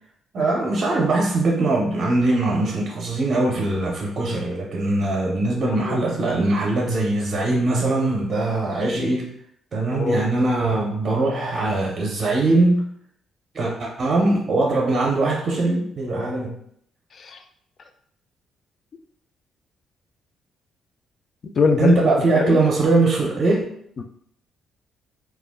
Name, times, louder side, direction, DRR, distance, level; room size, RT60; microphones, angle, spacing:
voice 1, 0.3-9.3 9.7-12.9 13.5-16.6 21.8-23.7, right 2 dB, 45° right, -2 dB, 0.6 m, -21 dB
voice 2, 5.6-6.0 8.8-9.1 9.9-10.2 17.1-17.4 21.6-22.6 24.0-24.1, left 4 dB, 50° left, 7 dB, 0.3 m, -24 dB
2.3 x 2.1 x 3.4 m, 0.68 s
cardioid pair, 90°, 0 cm